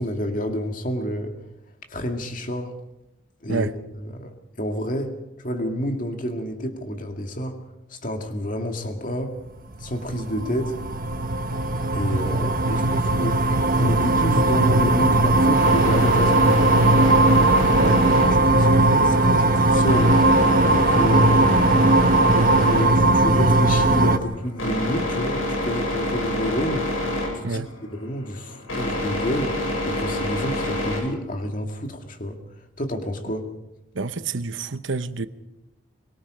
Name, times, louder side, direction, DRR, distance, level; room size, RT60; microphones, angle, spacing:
voice 1, 0.0-1.3 1.9-2.7 3.4-3.7 4.0-7.6 7.9-9.3 9.8-10.7 11.9-13.4 13.8-17.1 17.8-20.2 20.7-21.7 22.3-26.9 27.3-27.6 27.9-29.5 29.8-32.4 32.8-33.5, equal, 40° left, 2.2 m, -29 dB
sound 1, 9.8-24.2, right 2 dB, 45° right, 1.2 m, -18 dB
sound 2, 15.5-31.0, left 1 dB, 90° left, 8.0 m, -27 dB
voice 2, 33.9-35.3, right 4 dB, 75° right, 1.0 m, -28 dB
23.5 x 22.5 x 5.1 m
head